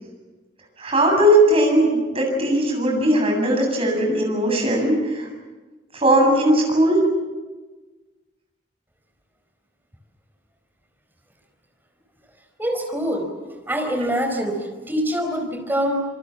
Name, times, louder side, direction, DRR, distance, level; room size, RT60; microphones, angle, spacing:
voice 1, 0.8-5.3 5.9-7.0, right 1 dB, 35° right, 1 dB, 7.7 m, -18 dB
voice 2, 12.6-13.3 13.7-16.0, equal, 10° right, 3 dB, 4.8 m, -24 dB
27.0 x 23.5 x 7.3 m, 1.2 s
head